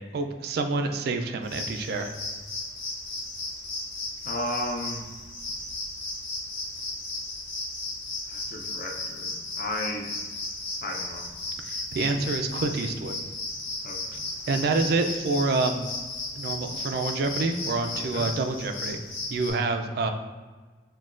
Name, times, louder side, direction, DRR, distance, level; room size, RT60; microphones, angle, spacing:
voice 1, 0.1-2.1 11.7-13.2 14.5-15.9 16.4-19.0 19.3-20.1, right 3 dB, 55° right, 6 dB, 0.3 m, -27 dB
sound 1, 1.4-19.5, left 2 dB, 75° left, 1.5 m, -35 dB
voice 2, 4.2-5.1 8.3-10.1 10.8-11.3 13.8-14.2 17.9-18.3, left 1 dB, 45° left, 2 dB, 0.4 m, -34 dB
6.0 x 2.2 x 2.4 m, 1.4 s
head